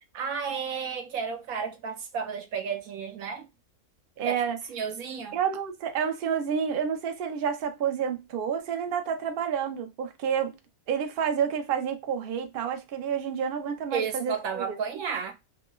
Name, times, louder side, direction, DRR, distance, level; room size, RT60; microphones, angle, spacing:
voice 1, 0.1-3.5 4.2-4.4 4.7-5.4 13.9-15.3, right 6 dB, 80° right, 1.2 m, -32 dB
voice 2, 4.2-4.6 5.3-10.5 10.9-14.8, right 7 dB, 55° right, 0.6 m, -29 dB
2.9 x 2.0 x 3.3 m
omnidirectional pair, 1.5 m